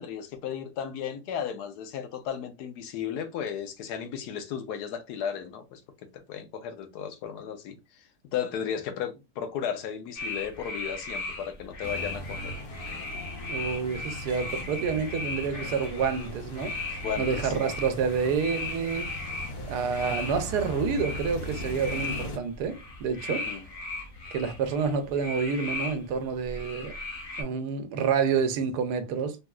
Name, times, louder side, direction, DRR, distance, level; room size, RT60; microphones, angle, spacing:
voice 1, 0.0-5.8 6.1-12.5 14.9-15.0 17.0-17.7 23.3-23.7, left 8 dB, 90° left, 1.2 m, -35 dB
sound 1, 10.1-27.4, left 2 dB, 45° left, 0.8 m, -37 dB
sound 2, 11.8-22.4, equal, 75° left, 1.4 m, -39 dB
voice 2, 13.5-19.1 19.7-23.4 24.3-26.9 27.4-29.4, right 6 dB, 90° right, 1.2 m, -28 dB
3.5 x 2.6 x 2.3 m
omnidirectional pair, 1.7 m